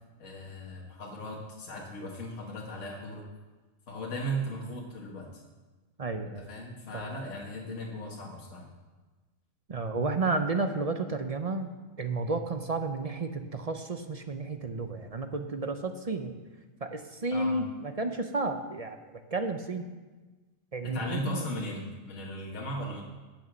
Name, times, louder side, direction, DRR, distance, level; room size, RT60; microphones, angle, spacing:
voice 1, 0.2-3.3 3.9-5.3 6.2-8.7 17.3-17.6 20.8-23.0, equal, 70° left, -2 dB, 1.7 m, -37 dB
voice 2, 6.0-6.5 6.9-7.1 9.7-11.7 12.0-16.4 16.8-19.9 20.7-21.4, right 3 dB, 40° right, 7 dB, 0.6 m, -32 dB
9.3 x 8.4 x 6.2 m, 1.3 s
omnidirectional pair, 1.4 m